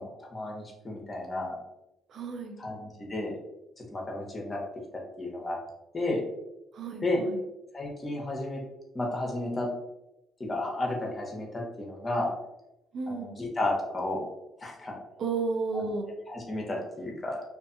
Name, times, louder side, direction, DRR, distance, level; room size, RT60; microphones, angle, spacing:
voice 1, 0.0-1.6 2.6-3.4 3.8-4.6 5.2-5.6 5.9-6.2 7.0-7.2 7.7-8.6 8.9-9.7 10.4-12.3 13.1-14.3 14.6-14.9 15.7-15.9 16.3-17.4, left 2 dB, 30° left, -1 dB, 0.9 m, -32 dB
voice 2, 2.1-2.6 6.7-7.4 12.9-13.4 15.2-16.1, right 4 dB, 65° right, 4 dB, 0.4 m, -32 dB
2.5 x 2.4 x 2.5 m, 0.91 s
supercardioid pair, 75°, 0 cm